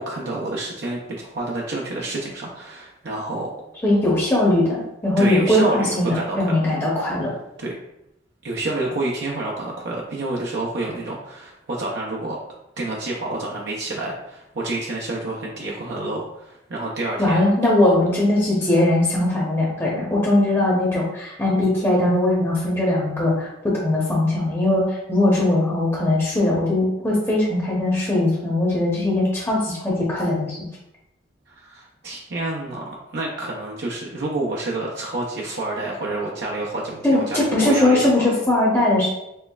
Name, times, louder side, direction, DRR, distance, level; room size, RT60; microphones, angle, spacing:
voice 1, 0.0-3.5 5.2-6.7 7.6-7.7 8.4-12.4 12.8-17.5 31.5-38.2, right 2 dB, 65° right, -3 dB, 0.6 m, -28 dB
voice 2, 3.8-7.3 17.2-23.5 23.7-30.6 37.0-39.1, left 1 dB, 15° left, -5 dB, 0.8 m, -20 dB
4.4 x 3.1 x 2.3 m, 0.86 s
head